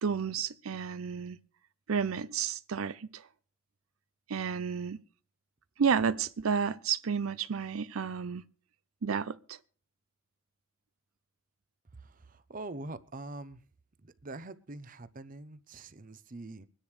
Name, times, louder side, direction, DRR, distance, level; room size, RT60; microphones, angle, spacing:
voice 1, 0.0-1.4 1.9-3.3 4.3-5.0 5.8-8.4 9.0-9.6, right 6 dB, 80° right, 0.5 m, -31 dB
voice 2, 12.0-13.6 14.0-16.7, right 2 dB, 40° right, 0.7 m, -44 dB
24.5 x 10.0 x 3.3 m
head